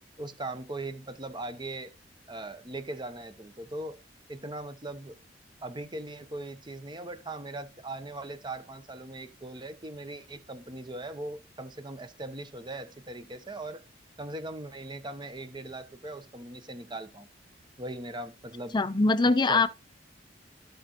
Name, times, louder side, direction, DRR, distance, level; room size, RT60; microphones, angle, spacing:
voice 1, 0.2-1.9 2.3-4.0 4.3-5.2 5.6-13.8 14.2-17.3 17.8-18.8 19.5-19.7, right 2 dB, 25° right, 0.8 m, -39 dB
voice 2, 18.7-19.7, left 3 dB, 25° left, 0.5 m, -22 dB
14.5 x 5.1 x 2.9 m
head